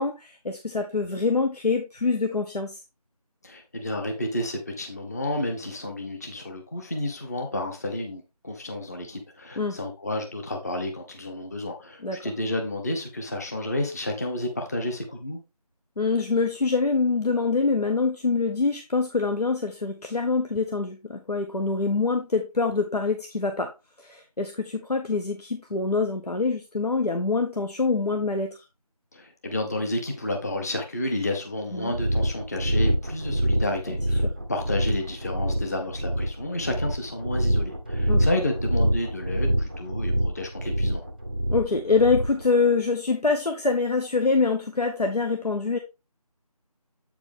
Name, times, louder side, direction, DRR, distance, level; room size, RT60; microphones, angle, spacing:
voice 1, 0.0-2.8 9.6-9.8 12.0-12.3 16.0-23.7 24.0-28.6 31.7-31.9 33.9-34.0 34.2-34.3 38.1-38.3 41.5-45.8, left 4 dB, 80° left, 1.1 m, -25 dB
voice 2, 3.4-15.4 29.1-41.0, left 1 dB, 25° left, 1.0 m, -31 dB
sound 1, 31.9-42.4, equal, 15° right, 0.6 m, -26 dB
8.0 x 4.8 x 3.5 m
figure-of-eight pair, 165°, 20 cm